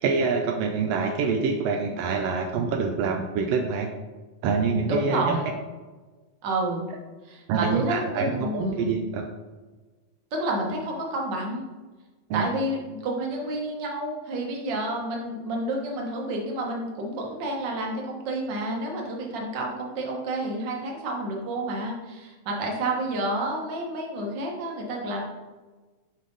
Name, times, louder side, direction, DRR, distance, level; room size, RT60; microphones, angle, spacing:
voice 1, 0.0-3.9 4.4-5.4 7.5-9.3 12.3-12.4, right 5 dB, 85° right, 3 dB, 1.4 m, -26 dB
voice 2, 4.9-5.5 6.4-6.8 7.2-8.9 10.3-11.6 12.3-25.2, right 1 dB, 50° right, 0 dB, 1.5 m, -30 dB
7.5 x 5.0 x 3.9 m, 1.3 s
omnidirectional pair, 3.4 m